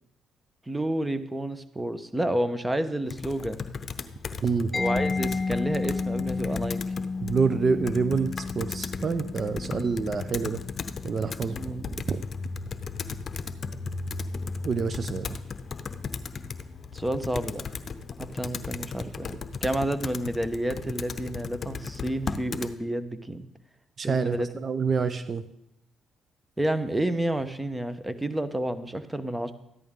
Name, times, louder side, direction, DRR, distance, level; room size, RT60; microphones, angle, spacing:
voice 1, 0.7-3.6 4.7-6.8 9.6-10.0 11.5-11.9 16.9-17.6 18.2-23.5 24.0-24.5 26.6-29.5, right 1 dB, 15° right, 12 dB, 1.0 m, -30 dB
Computer keyboard, 3.1-22.7, left 5 dB, 45° left, 0.8 m, -36 dB
Mallet percussion, 4.7-12.3, left 4 dB, 20° left, 1.7 m, -33 dB
voice 2, 7.2-10.6 11.0-11.6 12.1-12.2 14.6-15.4 24.0-25.4, right 5 dB, 45° right, 12 dB, 0.6 m, -27 dB
14.0 x 10.5 x 3.7 m, 0.81 s
supercardioid pair, 70°, 0 cm